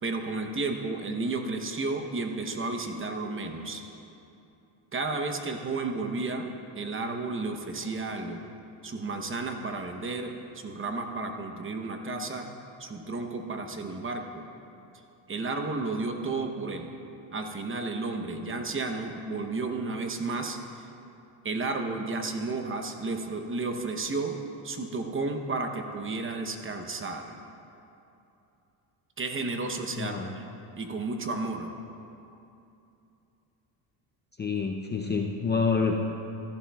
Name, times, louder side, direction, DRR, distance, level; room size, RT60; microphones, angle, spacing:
voice 1, 0.0-3.8 4.9-6.5 6.8-8.4 8.8-12.5 12.8-14.4 15.3-16.9 17.3-20.9 21.4-24.4 24.6-27.3 29.2-31.7, right 3 dB, 25° right, 5 dB, 0.8 m, -32 dB
voice 2, 29.9-30.3 34.4-36.1, left 4 dB, 20° left, 2 dB, 0.5 m, -27 dB
14.0 x 11.5 x 2.3 m, 2.8 s
cardioid pair, 95°, 49 cm